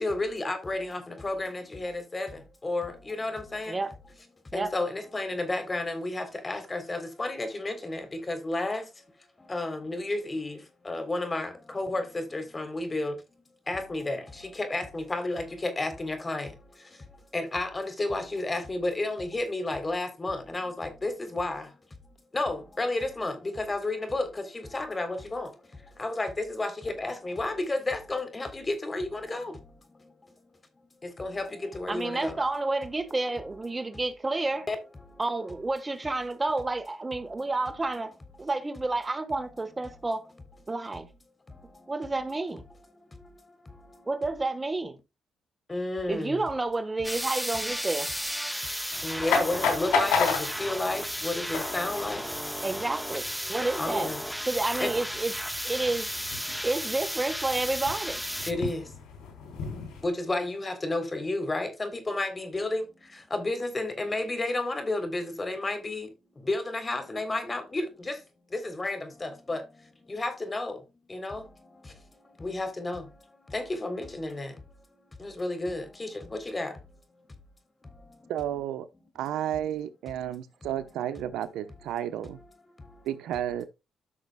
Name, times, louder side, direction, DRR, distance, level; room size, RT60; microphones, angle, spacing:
voice 1, 0.0-2.3 2.6-3.7 4.5-8.8 9.5-10.5 10.9-13.1 13.7-14.2 14.6-16.5 17.3-21.6 22.3-24.3 24.7-25.5 26.0-29.5 31.2-32.3 34.7-34.8 45.7-46.4 49.0-50.3 50.6-52.2 53.8-54.2 54.8-54.9 58.5-58.8 60.0-62.8 63.3-66.1 66.5-68.2 68.6-69.6 70.1-70.8 71.1-71.4 72.4-73.0 73.5-74.5 75.2-76.7, left 2 dB, 25° left, 3.5 m, -31 dB
voice 2, 31.9-34.7 35.2-38.1 38.4-40.2 40.7-41.1 41.9-42.6 44.1-45.0 46.1-48.1 52.6-53.2 53.5-54.1 54.5-55.3 55.6-56.1 56.6-58.2, right 2 dB, 25° right, 1.3 m, -30 dB
sound 1, 47.0-58.5, equal, ahead, 0.8 m, -34 dB
sound 2, 48.9-60.1, left 5 dB, 80° left, 3.8 m, -34 dB
voice 3, 78.3-78.9 79.1-82.4 83.0-83.6, right 11 dB, 90° right, 0.9 m, -32 dB
14.0 x 6.4 x 2.3 m
cardioid pair, 70°, 0 cm